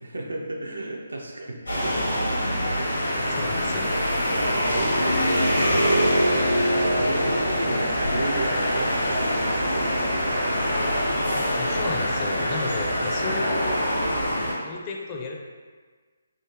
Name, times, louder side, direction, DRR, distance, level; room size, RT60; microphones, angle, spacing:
voice 1, 0.0-3.7 4.2-6.1 6.5-10.7 13.0-13.3, right 2 dB, 75° right, 0 dB, 0.6 m, -34 dB
sound 1, 1.7-14.5, equal, 85° left, 1.3 m, -24 dB
voice 2, 2.5-2.8 3.3-3.9 11.5-13.8 14.6-15.4, left 4 dB, 30° left, 1 dB, 0.4 m, -34 dB
3.7 x 2.5 x 3.0 m, 1.5 s
figure-of-eight pair, 140°, 0 cm